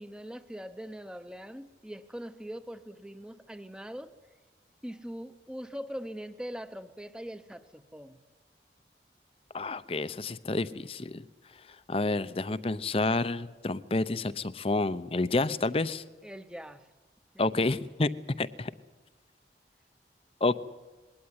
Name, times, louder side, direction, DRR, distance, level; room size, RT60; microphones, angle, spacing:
voice 1, 0.0-4.1 4.8-8.2 16.2-16.9 17.3-17.8, equal, 5° right, 11 dB, 0.8 m, -42 dB
voice 2, 9.5-11.3 11.9-16.0 17.4-18.1 18.4-18.7 20.4-20.6, left 2 dB, 30° left, 15 dB, 0.6 m, -29 dB
21.0 x 17.5 x 9.7 m, 1.2 s
head